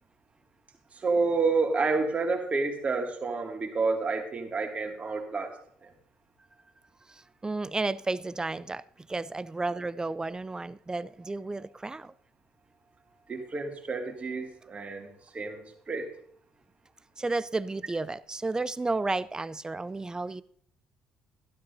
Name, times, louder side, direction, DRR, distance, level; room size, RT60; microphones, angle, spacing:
voice 1, 0.9-5.5 5.8-5.9 13.3-16.1, right 4 dB, 35° right, 2.2 m, -29 dB
voice 2, 7.4-8.8 9.1-12.1 17.2-20.4, right 3 dB, 20° right, 0.4 m, -32 dB
12.5 x 12.0 x 2.7 m
hypercardioid pair, 60°, 4 cm